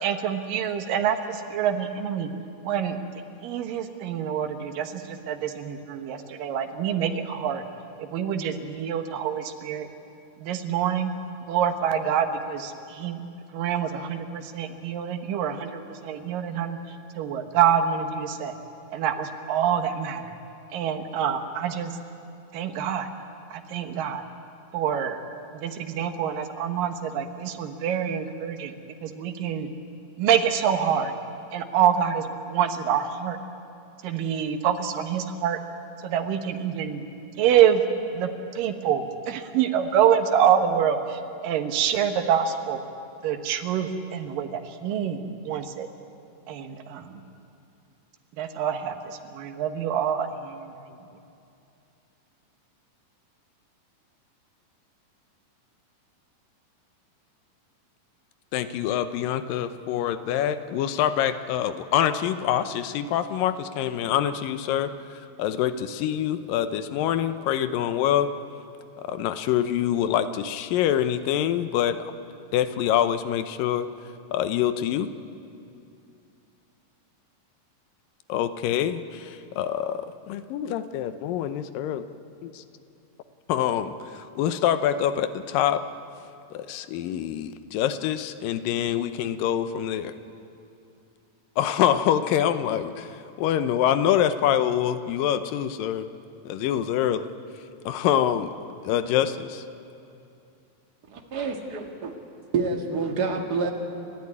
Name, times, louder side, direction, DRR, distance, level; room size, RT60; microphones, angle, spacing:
voice 1, 0.0-2.3 2.6-3.0 3.4-7.6 8.0-9.9 10.4-11.1 11.5-13.2 13.5-16.8 17.2-18.6 18.9-20.3 20.7-21.9 22.5-23.1 23.5-24.2 24.7-25.2 25.5-28.7 29.0-29.7 30.2-31.1 31.5-33.4 34.0-35.6 36.0-37.0 37.4-37.8 38.1-38.3 38.6-42.8 43.2-45.9 46.5-47.1 48.4-50.7, right 8 dB, 85° right, 7 dB, 2.9 m, -26 dB
voice 2, 58.5-64.9 65.4-68.3 69.0-72.1 72.5-73.9 74.3-75.1 78.3-82.0 82.4-82.6 83.5-85.8 86.5-90.1 91.6-93.1 93.4-96.1 96.5-97.2 97.9-98.5 98.8-99.6, left 10 dB, 90° left, 11 dB, 2.6 m, -25 dB
voice 3, 101.1-102.1 102.5-103.7, right 4 dB, 35° right, 2 dB, 1.9 m, -28 dB
30.0 x 13.5 x 9.6 m, 2.7 s
omnidirectional pair, 3.9 m